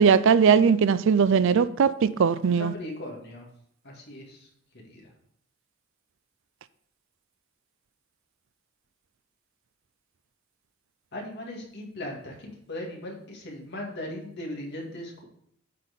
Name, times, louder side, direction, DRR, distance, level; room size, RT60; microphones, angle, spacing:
voice 1, 0.0-2.7, right 6 dB, 65° right, 0.4 m, -20 dB
voice 2, 2.4-3.5 3.8-4.5 4.8-5.1 11.1-15.2, left 1 dB, 55° left, 2.0 m, -38 dB
8.3 x 4.2 x 5.1 m
head